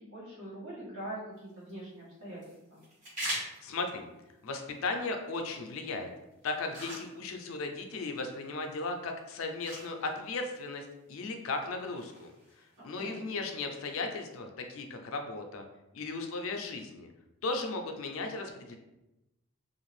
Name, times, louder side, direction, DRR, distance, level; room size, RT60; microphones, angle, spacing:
voice 1, 0.0-2.4 2.7-2.8 12.8-13.2, right 1 dB, 65° right, -7 dB, 1.2 m, -43 dB
sound 1, 1.3-14.4, equal, 35° right, 1.3 m, -46 dB
voice 2, 3.6-4.1 4.4-6.1 6.4-12.3 12.6-15.6 15.9-17.1 17.4-18.8, left 3 dB, 70° left, 4 dB, 0.4 m, -36 dB
2.6 x 2.4 x 3.2 m, 0.97 s
head